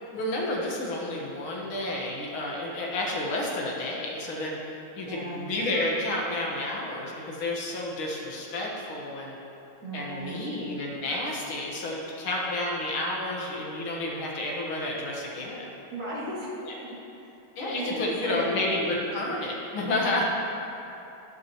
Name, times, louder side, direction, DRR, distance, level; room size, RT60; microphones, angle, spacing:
voice 1, 0.1-4.6 5.0-9.4 9.9-15.7 16.7-16.9 17.6-20.2, left 1 dB, 75° left, -3 dB, 2.3 m, -30 dB
voice 2, 5.0-5.5 9.8-10.5 15.9-16.6 16.9-17.3 17.6-18.6 20.2-20.3, equal, 55° right, -8 dB, 3.2 m, -36 dB
18.5 x 8.3 x 3.1 m, 2.9 s
omnidirectional pair, 2.3 m